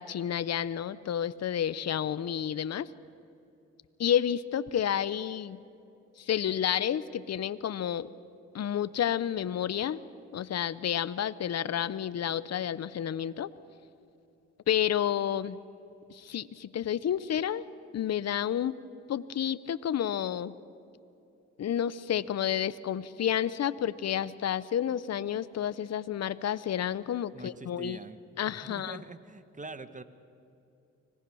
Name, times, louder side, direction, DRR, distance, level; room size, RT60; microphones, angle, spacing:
voice 1, 0.0-2.9 4.0-5.6 6.2-8.1 8.5-10.0 10.3-13.5 14.7-15.6 16.1-17.7 17.9-18.7 19.1-20.5 21.6-28.0 28.4-29.0, left 9 dB, 55° left, 17 dB, 0.7 m, -30 dB
voice 2, 27.3-28.2 28.6-30.0, right 3 dB, 25° right, 12 dB, 1.3 m, -44 dB
25.0 x 18.5 x 6.3 m, 2.8 s
cardioid pair, 60°, 30 cm